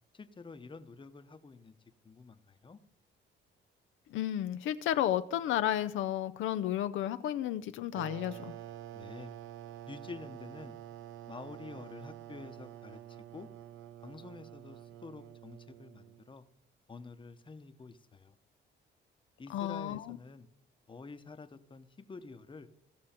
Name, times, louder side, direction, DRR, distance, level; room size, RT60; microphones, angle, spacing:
voice 1, 0.1-1.8 2.0-2.8 8.9-9.3 9.9-10.8 11.3-13.5 14.0-16.4 16.9-18.4 19.4-20.5 20.9-22.7, left 4 dB, 25° left, 1.0 m, -48 dB
voice 2, 4.1-8.5 19.5-20.2, left 11 dB, 85° left, 0.6 m, -32 dB
sound 1, 8.0-16.3, right 12 dB, 80° right, 0.4 m, -48 dB
16.5 x 6.2 x 4.4 m
cardioid pair, 90°, 20 cm